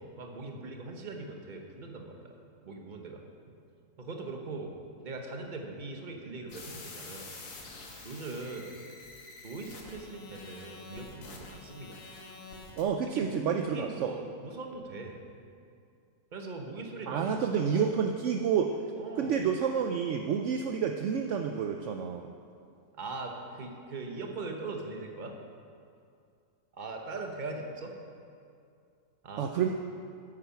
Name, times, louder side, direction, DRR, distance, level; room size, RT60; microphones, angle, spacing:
voice 1, 0.0-2.3 2.6-3.2 3.5-3.6 4.0-4.7 5.0-7.3 8.0-8.7 9.4-12.0 13.1-13.3 13.7-15.2 16.3-17.8 19.0-19.4 22.9-25.3 26.7-27.9 29.2-29.5, right 3 dB, 35° right, 2 dB, 1.0 m, -40 dB
sound 1, 6.5-12.8, left 3 dB, 75° left, 1.8 m, -47 dB
voice 2, 12.8-14.1 17.1-18.8 19.2-22.3 29.4-29.8, right 7 dB, 70° right, 4 dB, 0.7 m, -29 dB
9.1 x 8.7 x 5.8 m, 2.4 s
omnidirectional pair, 1.7 m